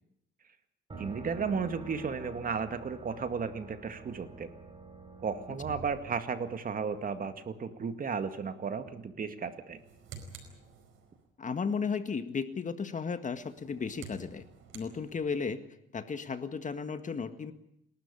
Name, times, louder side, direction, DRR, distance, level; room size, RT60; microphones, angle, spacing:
sound 1, 0.9-6.8, right 3 dB, 25° right, 4.3 m, -47 dB
voice 1, 1.0-4.5 5.2-9.8, right 5 dB, 45° right, 9 dB, 2.1 m, -34 dB
sound 2, 9.6-11.3 13.3-15.6, right 5 dB, 85° right, 4.8 m, -51 dB
voice 2, 11.4-14.5 14.7-15.6 15.9-17.5, left 5 dB, 40° left, 10 dB, 1.8 m, -34 dB
28.0 x 12.5 x 9.9 m, 0.78 s
cardioid pair, 90°, 20 cm